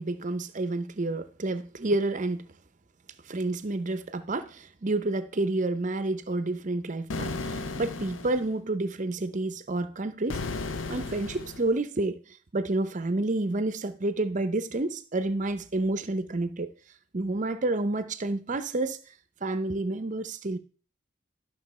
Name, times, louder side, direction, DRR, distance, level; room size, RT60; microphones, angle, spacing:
voice 1, 0.0-2.5 3.3-10.4 10.9-12.2 12.5-16.7 17.1-19.0 19.4-20.6, right 2 dB, 40° right, 0.7 m, -29 dB
sound 1, 7.1-8.5 10.3-11.7, left 3 dB, 90° left, 0.7 m, -34 dB
12.0 x 6.2 x 4.2 m
head